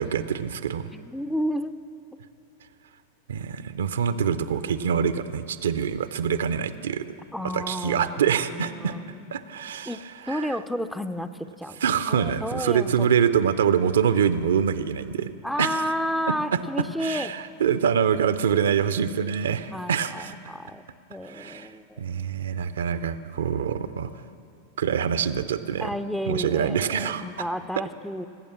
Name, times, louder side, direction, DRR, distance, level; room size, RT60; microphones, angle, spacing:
voice 1, 0.0-0.9 3.3-7.1 7.5-8.9 9.3-10.0 10.3-10.5 11.8-15.3 15.6-15.8 16.5-16.6 17.0-20.3 21.3-21.7 22.0-24.1 24.8-25.9 26.3-27.2, right 7 dB, 65° right, 13 dB, 0.5 m, -25 dB
voice 2, 0.9-1.8 7.3-9.2 9.9-10.0 10.3-11.3 11.6-11.8 12.1-13.1 15.4-17.3 19.7-20.8 21.1-22.0 25.8-28.3, equal, ahead, 11 dB, 0.5 m, -31 dB
18.5 x 8.5 x 7.3 m, 2.5 s
figure-of-eight pair, 90°, 0 cm